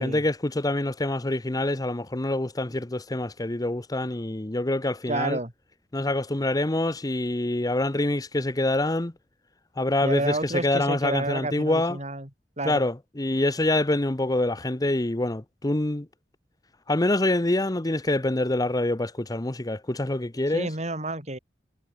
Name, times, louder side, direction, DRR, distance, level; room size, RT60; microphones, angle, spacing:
voice 1, 0.0-5.4 5.9-9.1 9.8-12.0 12.6-16.1 16.9-20.7, left 2 dB, 20° left, 0.9 m, -26 dB
voice 2, 5.1-5.5 10.0-12.3 12.6-12.9 20.5-21.4, right 2 dB, 40° right, 7.0 m, -30 dB
head